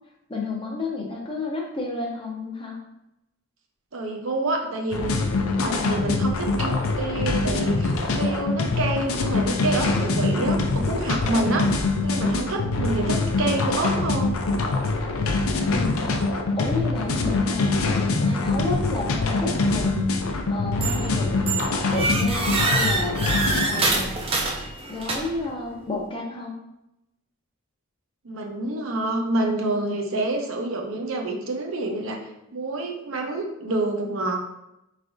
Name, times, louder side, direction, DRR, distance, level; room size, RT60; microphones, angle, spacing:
voice 1, 0.3-2.8 15.7-16.1 16.6-21.5 21.9-23.2 23.7-24.1 24.9-26.6, left 3 dB, 25° left, -1 dB, 0.6 m, -31 dB
voice 2, 3.9-5.3 5.6-11.7 12.0-14.4 16.9-17.2 28.2-32.2 32.5-34.4, right 2 dB, 65° right, 2 dB, 0.6 m, -27 dB
sound 1, 4.9-23.7, left 3 dB, 75° left, 0.5 m, -24 dB
sound 2, 20.8-21.1 21.5-25.5, right 3 dB, 25° right, 0.4 m, -26 dB
4.7 x 3.3 x 2.6 m, 0.86 s
head